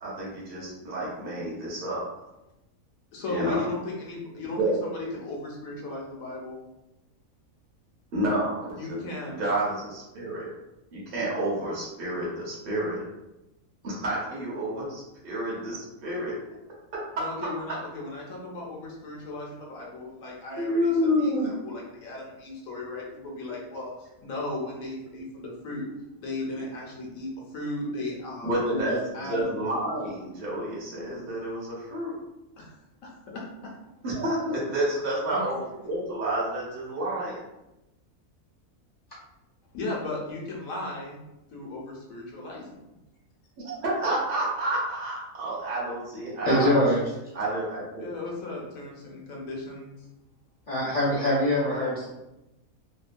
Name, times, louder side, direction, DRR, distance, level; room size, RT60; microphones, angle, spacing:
voice 1, 0.0-2.0 3.3-3.6 4.6-4.8 8.1-10.5 10.9-13.0 13.8-16.3 20.6-21.5 28.4-32.1 34.0-37.5 43.6-46.7 47.3-48.1, right 1 dB, 50° right, -6 dB, 0.8 m, -29 dB
voice 2, 3.1-6.6 8.7-9.4 17.2-20.9 21.2-25.8 26.2-29.6 32.6-32.7 33.0-33.7 35.3-35.6 39.7-41.2 41.5-43.0 48.0-50.1, left 2 dB, 75° left, -2 dB, 1.1 m, -36 dB
voice 3, 46.5-47.0 50.7-52.1, left 1 dB, 45° left, -8 dB, 0.7 m, -23 dB
2.9 x 2.2 x 2.5 m, 0.94 s
omnidirectional pair, 1.5 m